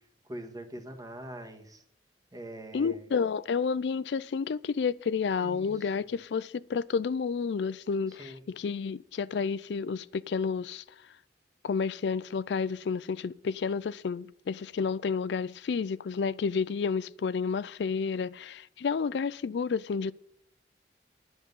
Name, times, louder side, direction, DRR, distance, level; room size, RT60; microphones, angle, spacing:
voice 1, 0.2-1.8 2.3-3.1 5.4-5.9 8.1-8.4, right 1 dB, 20° right, 1.6 m, -43 dB
voice 2, 2.7-10.8 11.6-20.1, left 5 dB, 70° left, 0.4 m, -30 dB
11.0 x 8.1 x 5.5 m
head